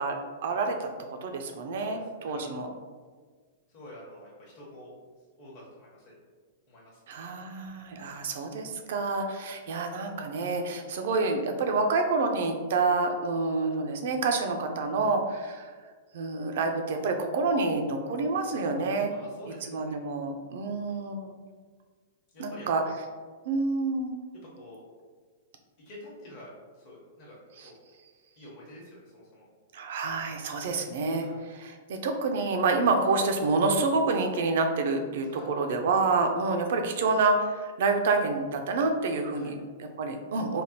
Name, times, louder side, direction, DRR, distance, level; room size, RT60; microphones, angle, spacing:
voice 1, 0.0-2.0 2.2-2.7 7.1-15.7 16.1-19.1 19.5-21.4 22.4-22.8 23.5-24.2 27.6-27.7 29.7-40.6, right 3 dB, 65° right, 4 dB, 0.4 m, -28 dB
voice 2, 1.8-2.6 3.7-5.0 5.4-6.1 6.7-7.2 19.1-20.0 22.3-22.9 24.6-24.8 25.8-27.4 27.6-27.8 28.4-29.5 31.2-31.4 35.3-35.5 39.4-39.5, left 1 dB, 50° left, -6 dB, 0.8 m, -48 dB
3.4 x 2.0 x 2.8 m, 1.5 s
hypercardioid pair, 120°, 0 cm